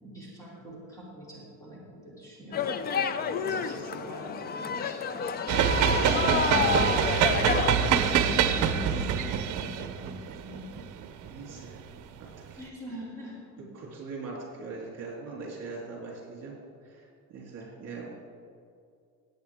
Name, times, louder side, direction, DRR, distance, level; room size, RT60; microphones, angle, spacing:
voice 1, 0.0-9.2 9.5-10.7 12.6-13.4, equal, 10° left, -7 dB, 3.0 m, -42 dB
sound 1, 2.5-7.9, left 6 dB, 30° left, 0.4 m, -29 dB
voice 2, 3.2-3.9 4.1-4.3 11.1-11.8 12.2-12.6 13.7-16.5 16.8-18.1, right 4 dB, 50° right, -3 dB, 3.2 m, -42 dB
sound 2, 5.5-11.8, right 8 dB, 65° right, 0.8 m, -25 dB
18.0 x 8.6 x 3.6 m, 2.4 s
cardioid pair, 170°, 33 cm